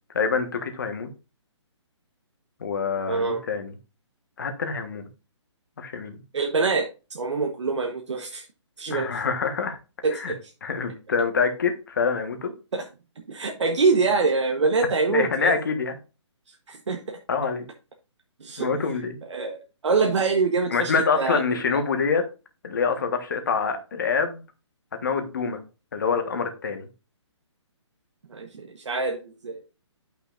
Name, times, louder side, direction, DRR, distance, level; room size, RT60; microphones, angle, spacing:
voice 1, 0.1-1.1 2.6-3.7 4.4-5.1 5.8-6.2 8.9-9.8 10.1-10.3 10.6-12.5 15.1-16.0 17.3-17.7 18.6-19.2 20.7-22.3 22.6-24.4 25.0-25.6 25.9-26.9, left 5 dB, 40° left, 1.4 m, -26 dB
voice 2, 3.1-3.4 6.3-8.5 8.8-9.2 10.0-10.5 12.7-12.9 13.3-15.5 16.7-17.2 18.4-18.7 19.3-21.8 28.3-29.6, right 4 dB, 70° right, 1.1 m, -25 dB
11.0 x 5.9 x 2.5 m
hypercardioid pair, 180°, 16 cm